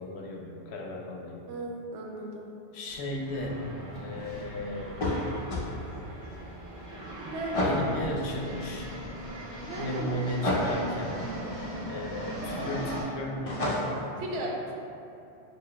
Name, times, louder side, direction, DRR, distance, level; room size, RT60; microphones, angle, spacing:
voice 1, 0.0-1.4 2.7-3.7 4.0-5.0 7.6-8.9 9.8-11.2 11.9-13.8, left 1 dB, 75° left, 0 dB, 0.8 m, -35 dB
voice 2, 1.5-2.5 7.3-7.8 9.7-10.2 14.2-14.6, right 1 dB, 90° right, 0 dB, 0.9 m, -35 dB
sound 1, 2.9-13.0, right 1 dB, 15° right, 1.4 m, -40 dB
sound 2, 4.9-5.7 7.5-7.9 10.4-10.8 13.5-14.1, left 1 dB, 45° left, 0.5 m, -28 dB
6.7 x 2.3 x 2.2 m, 2.8 s
omnidirectional pair, 1.1 m